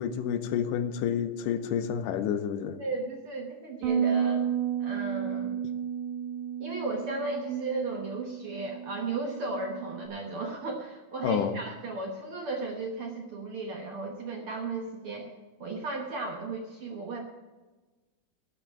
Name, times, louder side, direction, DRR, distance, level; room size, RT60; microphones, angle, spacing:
voice 1, 0.0-2.8 11.2-11.6, left 8 dB, 85° left, 10 dB, 2.3 m, -29 dB
voice 2, 2.8-4.4 4.8-5.6 6.6-15.3 15.6-17.2, right 3 dB, 60° right, 1 dB, 1.5 m, -35 dB
Bass guitar, 3.8-10.1, right 8 dB, 80° right, 2.4 m, -32 dB
12.0 x 5.0 x 8.8 m, 1.2 s
omnidirectional pair, 3.7 m